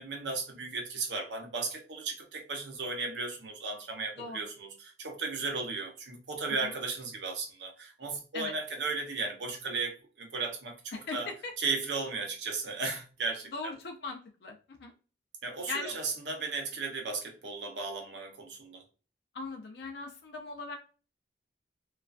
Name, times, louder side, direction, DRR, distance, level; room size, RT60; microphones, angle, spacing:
voice 1, 0.0-11.3 11.6-13.7 15.4-18.8, right 4 dB, 70° right, 0.7 m, -35 dB
voice 2, 10.9-11.5 13.5-14.9 15.7-16.0 19.3-20.8, left 3 dB, 65° left, 0.5 m, -39 dB
2.3 x 2.2 x 2.4 m
head